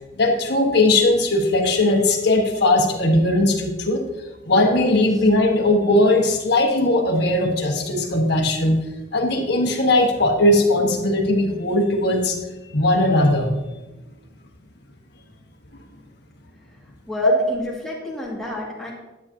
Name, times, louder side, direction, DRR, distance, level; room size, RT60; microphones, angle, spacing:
voice 1, 0.1-4.1 4.5-8.8 9.1-12.4 12.7-13.5 17.2-17.3, left 2 dB, 55° left, 2 dB, 1.5 m, -19 dB
voice 2, 16.7-18.9, left 1 dB, ahead, -5 dB, 2.2 m, -31 dB
12.0 x 8.7 x 2.9 m, 1.1 s
head